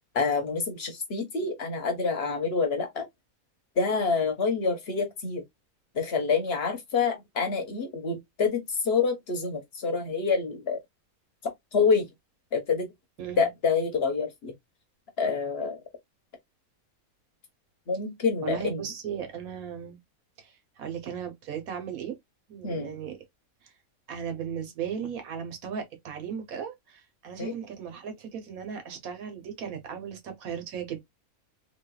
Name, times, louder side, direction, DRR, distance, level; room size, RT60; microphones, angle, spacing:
voice 1, 0.1-3.1 3.8-5.4 5.9-10.8 11.7-12.1 12.5-12.9 13.4-14.5 15.2-15.8 17.9-18.8 22.6-23.0 27.4-27.5, left 5 dB, 50° left, 1.0 m, -27 dB
voice 2, 13.2-13.5 18.4-20.0 20.4-22.2 22.5-23.2 23.6-23.7 24.1-31.0, right 8 dB, 75° right, 1.3 m, -36 dB
3.3 x 3.0 x 2.2 m
omnidirectional pair, 1.5 m